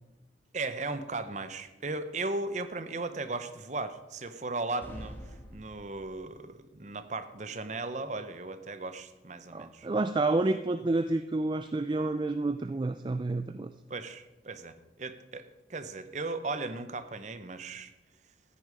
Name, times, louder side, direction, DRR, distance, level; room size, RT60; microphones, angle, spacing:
voice 1, 0.5-5.2 5.5-9.9 13.9-17.9, right 3 dB, 40° right, 10 dB, 0.8 m, -36 dB
sound 1, 4.8-6.5, equal, 10° left, 1.3 m, -46 dB
voice 2, 9.5-13.7, right 2 dB, 25° right, 10 dB, 0.3 m, -29 dB
14.0 x 9.7 x 5.2 m, 1.1 s
head